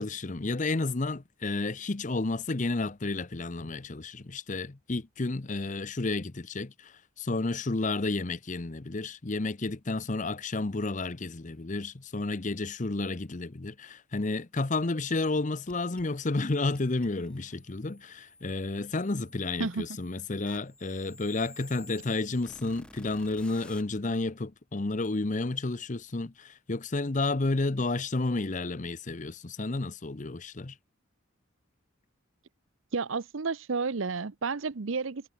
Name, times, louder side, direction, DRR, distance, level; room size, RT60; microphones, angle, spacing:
voice 1, 0.0-30.7, left 2 dB, 35° left, 0.7 m, -31 dB
sound 1, 15.7-23.8, left 1 dB, 5° left, 7.9 m, -54 dB
voice 2, 32.9-35.3, right 4 dB, 70° right, 0.7 m, -31 dB
head